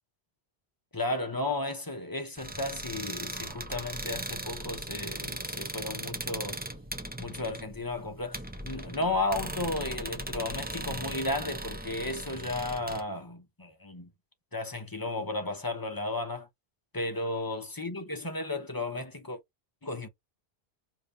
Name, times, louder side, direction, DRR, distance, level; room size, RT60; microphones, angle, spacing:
voice 1, 0.9-6.6 7.2-14.1 14.5-16.5 16.9-19.4 19.8-20.1, left 2 dB, 25° left, 0.7 m, -34 dB
sound 1, 2.4-13.0, right 1 dB, 10° right, 0.5 m, -38 dB
5.1 x 2.9 x 2.6 m
omnidirectional pair, 1.1 m